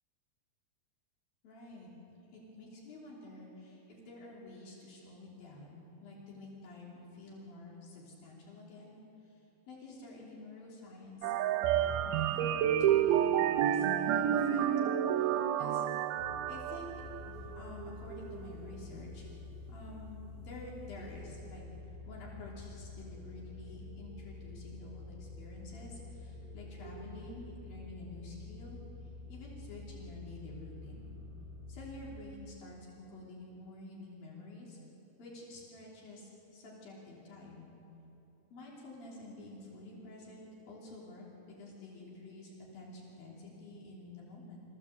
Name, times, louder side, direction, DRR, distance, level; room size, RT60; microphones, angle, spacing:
voice 1, 1.4-1.9 2.3-9.0 9.3-9.4 9.7-11.3 11.6-14.7 15.1-16.0 16.5-16.9 17.2-19.3 19.7-21.6 22.1-28.8 29.3-31.2 31.7-34.8 35.2-37.7 38.5-44.6, left 2 dB, 70° left, -4 dB, 5.0 m, -49 dB
sound 1, 11.2-17.3, right 10 dB, 85° right, 2.6 m, -29 dB
sound 2, 16.2-32.2, left 2 dB, 65° right, 3.5 m, -48 dB
25.5 x 16.0 x 8.0 m, 3.0 s
omnidirectional pair, 4.3 m